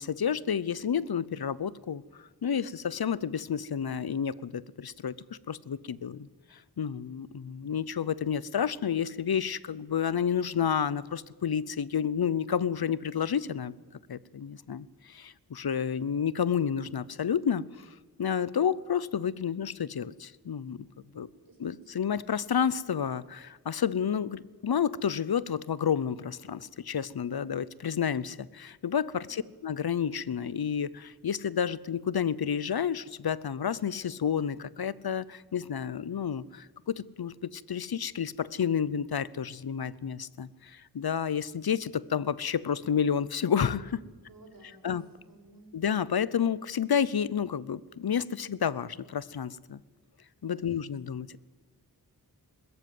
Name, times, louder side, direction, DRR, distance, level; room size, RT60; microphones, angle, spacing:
voice 1, 0.0-5.2 5.5-13.7 14.1-17.9 18.2-20.9 21.1-21.3 21.6-44.0 44.8-45.0 45.7-49.8 50.4-51.4, left 7 dB, 70° left, 20 dB, 0.8 m, -30 dB
voice 2, 21.1-22.4 29.1-29.6 44.3-45.7, right 1 dB, 60° right, 1 dB, 7.1 m, -56 dB
21.0 x 14.0 x 9.4 m, 1.4 s
wide cardioid pair, 70°, 39 cm